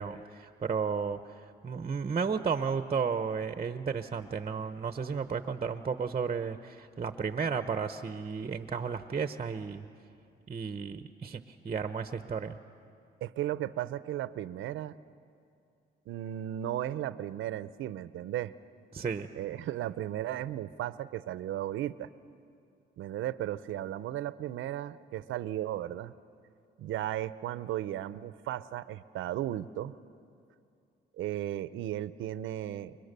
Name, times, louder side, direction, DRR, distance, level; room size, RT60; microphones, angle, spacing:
voice 1, 0.0-9.9 10.5-12.6 18.9-19.3, right 6 dB, 30° right, 9 dB, 0.9 m, -33 dB
voice 2, 13.2-15.0 16.1-18.5 19.3-22.1 23.0-26.1 26.8-29.9 31.2-33.0, right 12 dB, 80° right, 15 dB, 0.7 m, -35 dB
30.0 x 23.5 x 6.8 m, 2.5 s
cardioid pair, 90°, 20 cm